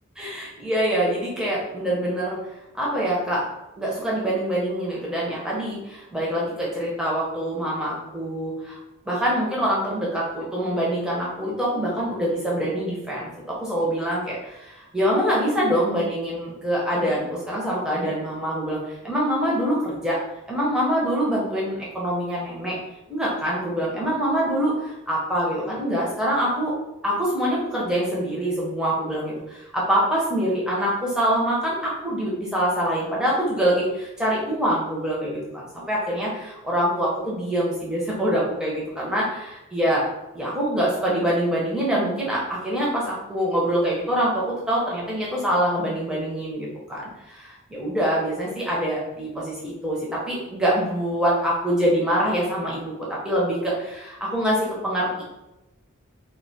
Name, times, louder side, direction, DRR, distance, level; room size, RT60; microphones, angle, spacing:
voice 1, 0.2-2.4 2.7-3.4 3.8-8.8 9.1-20.2 20.5-22.8 23.1-26.7 27.0-40.1 40.3-55.2, equal, 5° right, -6 dB, 0.5 m, -25 dB
2.2 x 2.1 x 2.6 m, 0.94 s
head